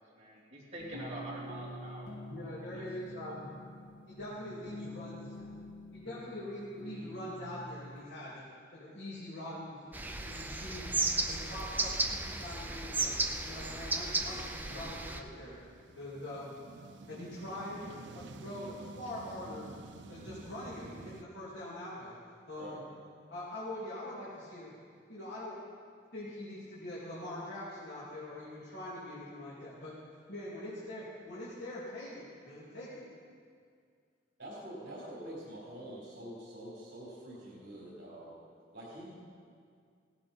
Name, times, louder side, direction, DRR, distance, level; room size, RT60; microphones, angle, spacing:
voice 1, 0.0-2.1 2.7-2.9, right 1 dB, 35° right, -7 dB, 3.2 m, -45 dB
sound 1, 0.8-8.0, left 1 dB, 85° left, 1.6 m, -47 dB
voice 2, 2.3-3.5 4.1-5.3 5.9-8.4 8.7-9.8 10.2-10.9 11.3-13.1 13.4-15.6 15.9-16.5 17.1-19.7 20.1-22.1 22.5-22.8 23.3-24.7 25.1-25.6 26.1-30.0 30.3-33.0, left 1 dB, 70° left, -9 dB, 2.9 m, -43 dB
sound 2, 9.7-9.8 10.2-21.2, right 2 dB, 75° right, 0.7 m, -52 dB
sound 3, 9.9-15.2, right 2 dB, 10° right, 0.6 m, -34 dB
voice 3, 34.4-38.3 38.7-39.1, right 1 dB, 60° right, -7 dB, 3.9 m, -46 dB
16.5 x 13.0 x 4.5 m, 2.2 s
head